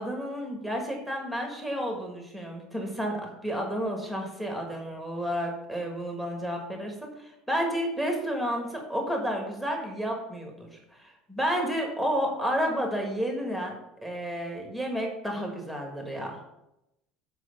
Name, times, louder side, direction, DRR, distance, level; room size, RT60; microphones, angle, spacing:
voice 1, 0.0-10.7 11.0-16.4, equal, ahead, 1 dB, 1.3 m, -31 dB
7.6 x 4.7 x 6.4 m, 0.89 s
cardioid pair, 180°, 0 cm